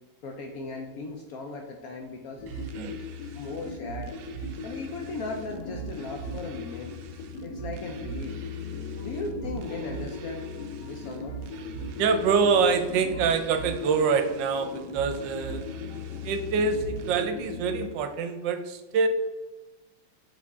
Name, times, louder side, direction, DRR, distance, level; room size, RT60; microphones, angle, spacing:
voice 1, 0.2-2.4 3.3-4.1 4.6-7.0 7.4-8.3 9.0-10.5 10.8-11.3, left 3 dB, 85° left, 2 dB, 0.7 m, -37 dB
sound 1, 2.4-17.8, left 4 dB, 60° left, 1.4 m, -39 dB
sound 2, 2.5-17.2, right 10 dB, 90° right, 0.8 m, -42 dB
voice 2, 12.0-15.6 16.2-19.1, right 5 dB, 70° right, 8 dB, 1.2 m, -25 dB
7.6 x 3.8 x 3.5 m, 1.2 s
omnidirectional pair, 2.3 m